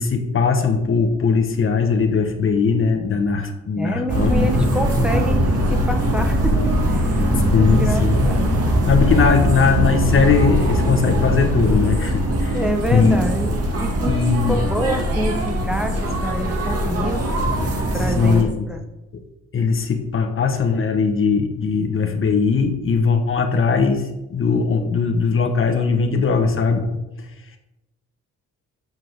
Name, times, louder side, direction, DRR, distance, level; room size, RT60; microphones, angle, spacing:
voice 1, 0.0-4.3 4.6-4.7 7.5-8.4 8.9-12.6 12.9-13.2 14.1-14.6 18.2-18.7 19.1-19.2 19.5-24.0 24.3-26.8, left 5 dB, 45° left, 5 dB, 1.2 m, -19 dB
voice 2, 3.8-7.2 7.6-8.5 12.5-14.1 14.5-17.3 17.9-18.8, equal, 5° right, 3 dB, 1.1 m, -27 dB
sound 1, 4.1-18.4, equal, 50° right, 2.3 m, -20 dB
7.5 x 5.7 x 6.4 m, 1.0 s
cardioid pair, 90°, 30 cm